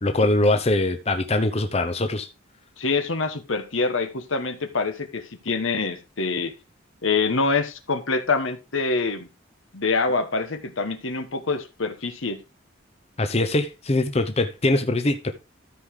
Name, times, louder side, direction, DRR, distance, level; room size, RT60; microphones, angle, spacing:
voice 1, 0.0-2.3 13.2-15.3, left 2 dB, 30° left, 0.7 m, -22 dB
voice 2, 2.8-6.5 7.0-9.3 9.7-12.4, left 4 dB, 75° left, 1.3 m, -25 dB
13.5 x 4.9 x 3.7 m
head